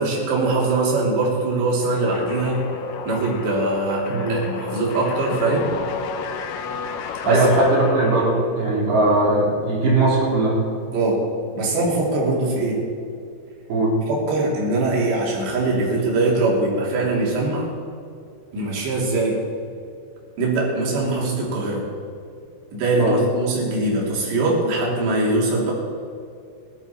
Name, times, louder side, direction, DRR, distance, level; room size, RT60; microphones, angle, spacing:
voice 1, 0.0-2.6 3.1-5.7 7.2-7.5 10.9-11.3 11.5-12.8 14.1-17.7 18.5-19.5 20.4-21.9 22.7-25.7, right 2 dB, 75° right, -3 dB, 5.3 m, -22 dB
sound 1, 1.9-8.7, left 5 dB, 75° left, 2.0 m, -32 dB
voice 2, 7.3-10.6 13.7-14.0 23.0-23.2, right 2 dB, 60° right, -5 dB, 5.5 m, -19 dB
17.0 x 12.5 x 4.4 m, 2.4 s
omnidirectional pair, 5.0 m